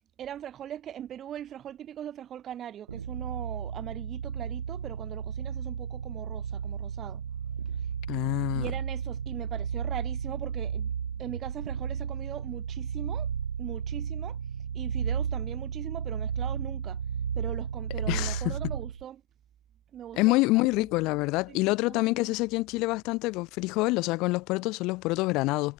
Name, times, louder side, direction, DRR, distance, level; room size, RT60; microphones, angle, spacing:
voice 1, 0.2-7.2 8.5-10.9 11.2-13.3 13.6-14.4 14.7-17.0 17.3-19.2 19.9-20.9 21.5-22.3, right 10 dB, 25° right, 2.6 m, -41 dB
sound 1, 2.9-19.0, right 7 dB, 85° right, 1.7 m, -33 dB
voice 2, 8.1-8.7 18.1-18.5 20.2-25.7, left 22 dB, 40° left, 2.3 m, -26 dB
hypercardioid pair, 120°, 0 cm